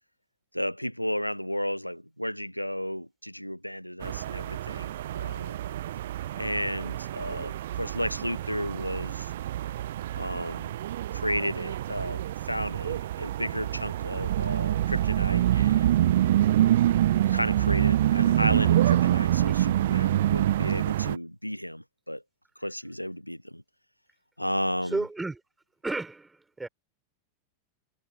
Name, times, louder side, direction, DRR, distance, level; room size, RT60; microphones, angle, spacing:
voice 1, 0.5-5.6 6.4-9.3 10.1-10.7 11.1-15.9 17.3-22.2 22.6-23.6 24.4-25.0, equal, 90° left, 1.0 m, -33 dB
sound 1, 4.0-21.2, right 13 dB, 60° right, 1.2 m, -26 dB
voice 2, 24.9-25.4 25.8-26.7, right 3 dB, 10° right, 6.5 m, -32 dB
figure-of-eight pair, 90°, 0 cm